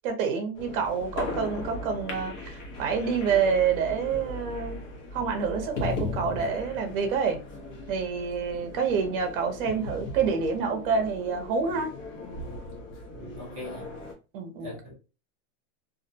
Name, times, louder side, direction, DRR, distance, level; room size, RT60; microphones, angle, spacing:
voice 1, 0.0-4.8 5.1-7.4 7.9-11.9 14.3-14.7, right 6 dB, 45° right, 0.7 m, -27 dB
sound 1, 0.5-14.1, left 2 dB, 60° left, 0.9 m, -38 dB
voice 2, 13.1-13.9 14.6-14.9, left 1 dB, 15° right, 0.3 m, -42 dB
2.5 x 2.0 x 2.6 m
supercardioid pair, 170°, 41 cm